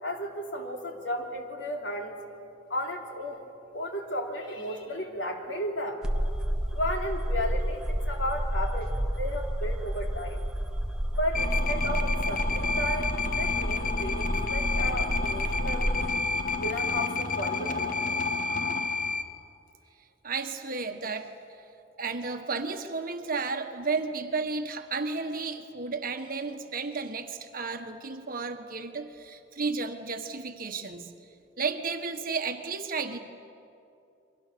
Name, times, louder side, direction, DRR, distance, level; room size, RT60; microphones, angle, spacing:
voice 1, 0.0-2.1 2.7-3.5 3.7-6.0 6.7-8.9 9.2-10.5 11.2-15.9 16.6-18.1, equal, 80° left, 2 dB, 3.4 m, -34 dB
sound 1, 6.0-16.1, equal, 5° right, 1.3 m, -30 dB
sound 2, 11.3-19.2, left 4 dB, 45° left, 1.3 m, -30 dB
voice 2, 20.2-21.3 22.0-31.1 31.6-33.2, right 4 dB, 50° right, 6 dB, 1.5 m, -33 dB
29.5 x 24.0 x 6.9 m, 2.6 s
head